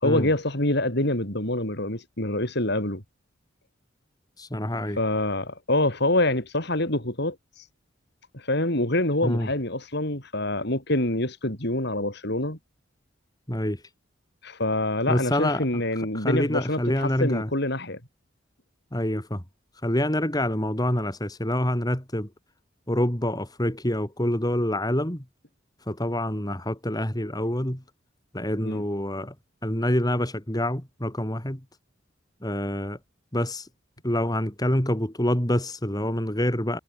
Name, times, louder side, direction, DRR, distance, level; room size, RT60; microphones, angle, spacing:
voice 1, 0.0-3.0 5.0-7.4 8.3-12.6 14.4-18.0 28.6-28.8, left 1 dB, 55° left, 5.9 m, -26 dB
voice 2, 4.4-5.0 9.2-9.5 13.5-13.8 15.1-15.8 16.1-17.5 18.9-19.4 19.8-22.3 22.9-25.2 25.9-27.8 28.3-29.3 29.6-31.6 32.4-33.0 33.3-33.7 34.0-36.8, left 1 dB, 20° left, 3.4 m, -26 dB
head